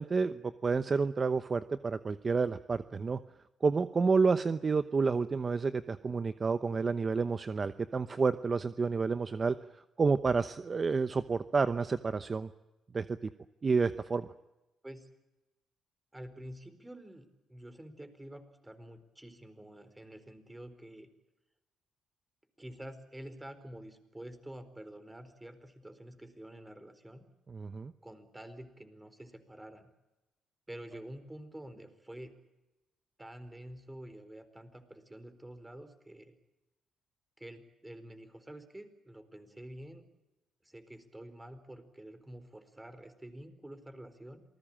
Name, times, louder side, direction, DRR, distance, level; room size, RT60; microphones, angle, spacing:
voice 1, 0.0-3.2 3.6-9.6 10.0-12.5 12.9-13.1 13.6-14.3 27.5-27.9, right 4 dB, 35° right, 12 dB, 0.9 m, -29 dB
voice 2, 16.1-21.1 22.6-27.2 28.0-29.9 30.7-32.3 33.2-36.4 37.4-40.0 40.6-44.4, right 1 dB, 10° right, 10 dB, 4.3 m, -48 dB
27.5 x 20.0 x 8.9 m, 1.0 s
cardioid pair, 90°, 0 cm